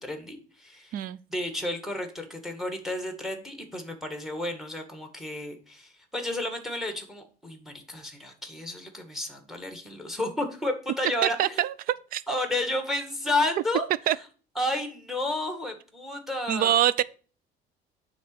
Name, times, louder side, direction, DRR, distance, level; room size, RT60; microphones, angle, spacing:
voice 1, 0.0-1.0 1.3-11.6 12.3-13.9 14.6-16.8, left 1 dB, ahead, 1.9 m, -31 dB
voice 2, 11.4-12.2 14.1-14.2 16.5-17.0, right 11 dB, 55° right, 0.5 m, -24 dB
9.3 x 4.1 x 6.7 m
cardioid pair, 140°, 17 cm